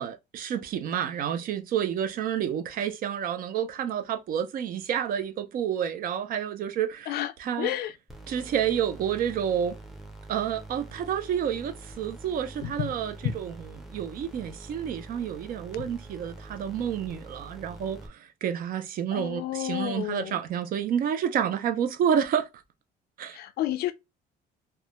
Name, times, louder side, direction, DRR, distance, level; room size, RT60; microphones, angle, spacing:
voice 1, 0.0-7.7 8.3-9.8 10.3-22.5 23.2-23.4, right 9 dB, 55° right, 0.5 m, -29 dB
voice 2, 7.6-7.9 12.6-12.9 15.7-15.9 19.1-20.3 23.3-23.9, left 13 dB, 70° left, 0.4 m, -31 dB
sound 1, 8.1-18.1, right 2 dB, ahead, 0.5 m, -45 dB
2.3 x 2.1 x 2.9 m
cardioid pair, 110°, 17 cm